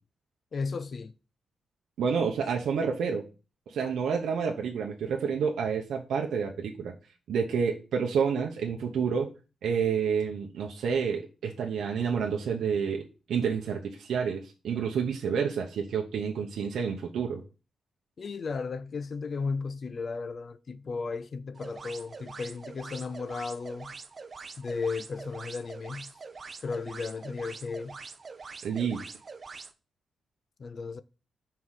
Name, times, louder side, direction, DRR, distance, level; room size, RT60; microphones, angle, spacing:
voice 1, 0.5-1.1 18.2-24.0 24.6-26.2 26.6-28.0 30.6-31.0, left 4 dB, 35° left, 0.5 m, -35 dB
voice 2, 2.0-3.3 3.7-6.9 7.3-9.3 9.6-17.4 28.6-29.1, right 6 dB, 90° right, 0.9 m, -29 dB
sound 1, 21.6-29.7, right 4 dB, 30° right, 0.5 m, -44 dB
5.7 x 4.7 x 6.4 m
wide cardioid pair, 170°, 0 cm